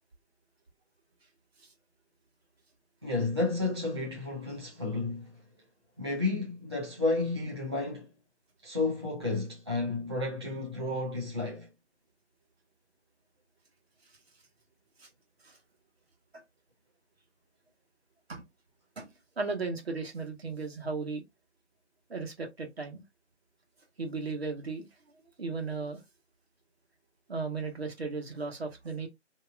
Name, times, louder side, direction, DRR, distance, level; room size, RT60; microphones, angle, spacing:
voice 1, 3.0-5.4 6.0-8.1 8.6-11.7, left 3 dB, 25° right, 0.5 m, -31 dB
voice 2, 19.4-21.2 22.1-23.0 24.0-24.9 25.4-26.0 27.3-29.1, right 4 dB, 60° right, 1.3 m, -35 dB
2.8 x 2.3 x 3.4 m
figure-of-eight pair, 165°, 35 cm